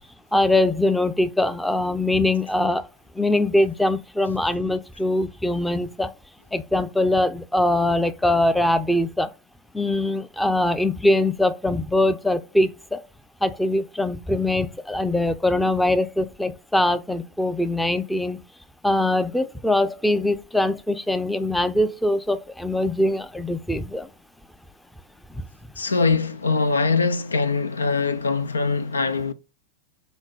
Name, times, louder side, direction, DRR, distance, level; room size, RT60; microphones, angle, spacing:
voice 1, 0.3-2.9 3.1-6.1 6.5-9.3 9.7-13.0 13.4-18.4 18.8-24.1 25.3-25.4, left 1 dB, 5° left, 0.6 m, -22 dB
voice 2, 25.8-29.3, left 4 dB, 75° left, 0.5 m, -22 dB
6.1 x 3.9 x 3.9 m
figure-of-eight pair, 90°, 0 cm